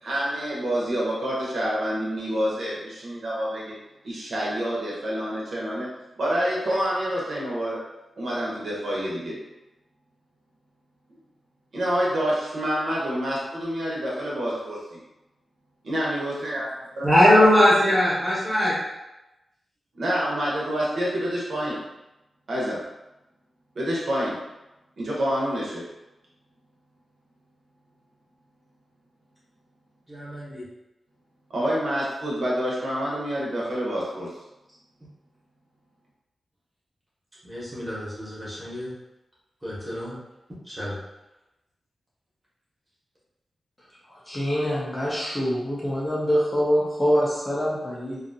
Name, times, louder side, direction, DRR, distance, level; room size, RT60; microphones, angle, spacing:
voice 1, 0.0-3.8 4.0-5.9 6.2-7.8 8.2-9.4 11.7-15.0 15.8-16.6 17.0-17.6 19.9-21.8 22.5-22.8 23.8-24.4 25.0-25.8 31.5-34.3, equal, 60° right, -5 dB, 0.8 m, -27 dB
voice 2, 17.0-18.7 30.1-30.6 37.4-38.9 39.6-40.1 40.7-40.9, left 1 dB, 5° right, -8 dB, 0.9 m, -21 dB
voice 3, 44.1-48.2, equal, 20° left, -5 dB, 0.5 m, -25 dB
2.6 x 2.4 x 2.6 m, 0.97 s
wide cardioid pair, 175°, 0 cm